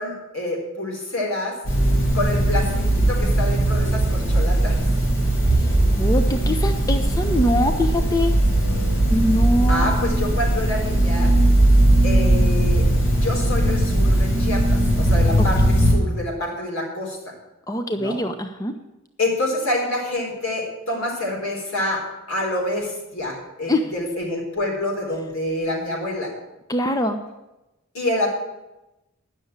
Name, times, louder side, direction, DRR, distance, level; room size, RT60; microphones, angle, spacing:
voice 1, 0.0-1.5 2.1-4.8 9.7-11.3 12.0-14.6 15.0-17.2 17.9-18.2 19.2-26.3 27.9-28.3, left 1 dB, 80° left, -2 dB, 4.2 m, -27 dB
sound 1, 1.6-15.9, right 1 dB, 65° left, 3.1 m, -19 dB
voice 2, 6.0-8.3 9.1-10.0 15.4-15.5 17.7-18.7 23.7-23.8 26.7-27.2, left 1 dB, 15° left, 7 dB, 0.5 m, -23 dB
10.5 x 6.6 x 8.7 m, 0.97 s
head